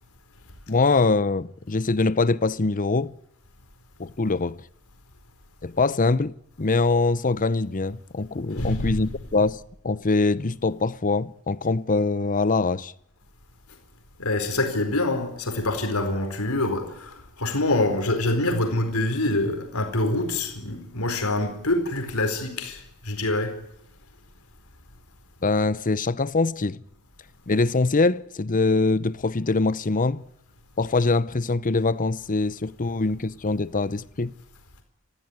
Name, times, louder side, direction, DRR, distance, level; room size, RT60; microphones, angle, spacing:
voice 1, 0.7-3.1 4.0-4.6 5.6-12.9 25.4-26.8 27.5-30.2 30.8-34.3, left 3 dB, 40° left, 0.8 m, -23 dB
voice 2, 8.6-9.0 14.2-23.6, left 2 dB, 80° left, 4.4 m, -25 dB
23.5 x 15.5 x 9.7 m
head